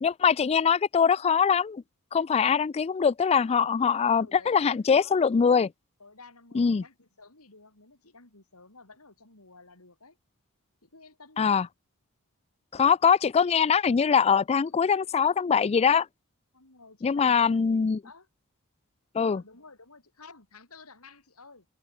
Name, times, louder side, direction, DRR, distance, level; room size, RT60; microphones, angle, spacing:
voice 1, 0.0-1.8 2.1-5.7 6.5-6.8 11.4-11.7 12.7-16.1 17.0-18.0 19.1-19.4, left 6 dB, 30° left, 0.3 m, -23 dB
voice 2, 4.1-5.3 6.0-10.2 10.8-11.6 14.5-14.9 16.5-18.3 19.2-21.7, left 4 dB, 70° left, 5.5 m, -52 dB
head